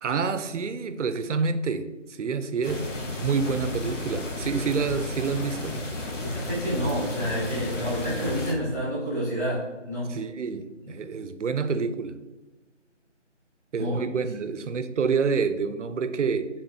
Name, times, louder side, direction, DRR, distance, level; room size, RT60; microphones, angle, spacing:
voice 1, 0.0-2.9 3.2-5.8 10.1-12.2 13.7-16.5, right 5 dB, 75° right, 11 dB, 0.5 m, -28 dB
sound 1, 2.6-8.5, left 1 dB, 85° left, 1.1 m, -33 dB
voice 2, 6.2-10.1 13.8-14.0, equal, 15° left, -13 dB, 1.4 m, -29 dB
4.4 x 3.6 x 2.6 m, 1.1 s
figure-of-eight pair, 175°, 37 cm